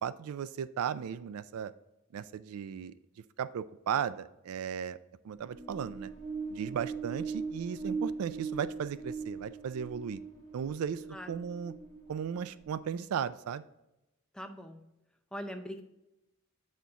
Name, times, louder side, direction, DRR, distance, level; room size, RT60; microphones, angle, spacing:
voice 1, 0.0-1.7 2.1-2.9 3.4-5.0 5.2-6.1 6.5-10.2 10.5-11.0 11.3-11.7 12.1-13.6, right 7 dB, 80° right, 15 dB, 0.3 m, -36 dB
sound 1, 5.5-13.0, right 5 dB, 35° right, 1.5 m, -40 dB
voice 2, 11.1-11.4 14.3-14.8 15.3-15.8, equal, 5° left, 5 dB, 0.5 m, -42 dB
8.0 x 4.3 x 3.6 m, 0.93 s
head